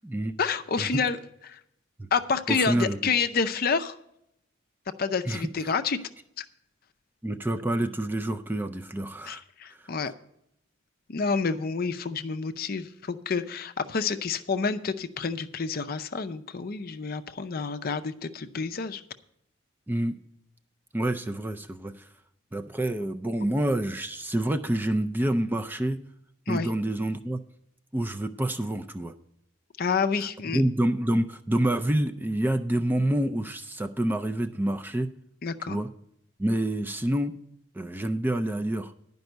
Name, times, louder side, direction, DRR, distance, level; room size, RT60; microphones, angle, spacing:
voice 1, 0.4-1.2 1.5-1.6 2.1-3.9 5.0-6.0 6.4-6.5 9.3-10.1 11.1-19.0 26.5-26.7 29.8-30.6 35.4-35.8, left 5 dB, 45° left, 10 dB, 0.5 m, -28 dB
voice 2, 2.5-3.0 5.2-5.5 7.2-9.4 9.7-9.9 19.9-20.2 20.9-22.1 22.5-26.0 26.5-27.4 27.9-29.1 30.5-35.1 35.7-35.9 36.4-37.3 37.7-38.9, right 1 dB, 10° right, 7 dB, 0.3 m, -27 dB
10.5 x 5.3 x 7.8 m, 0.77 s
head